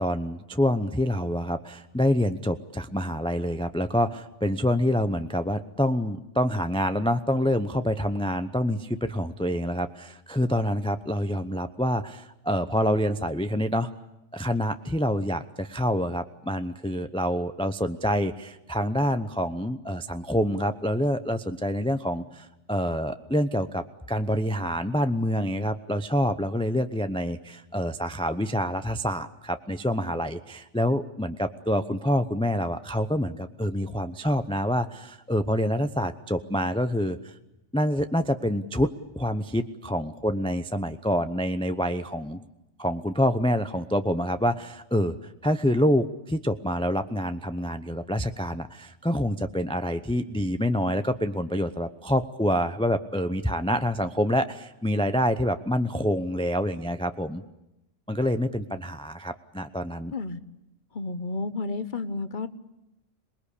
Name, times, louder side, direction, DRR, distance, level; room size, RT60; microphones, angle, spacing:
voice 1, 0.0-13.9 14.3-37.3 37.7-42.4 42.8-45.2 45.4-57.4 58.1-60.1, equal, 5° left, 9 dB, 0.6 m, -27 dB
voice 2, 60.9-62.5, left 3 dB, 40° left, 12 dB, 1.2 m, -31 dB
27.0 x 20.5 x 8.5 m, 0.92 s
omnidirectional pair, 1.3 m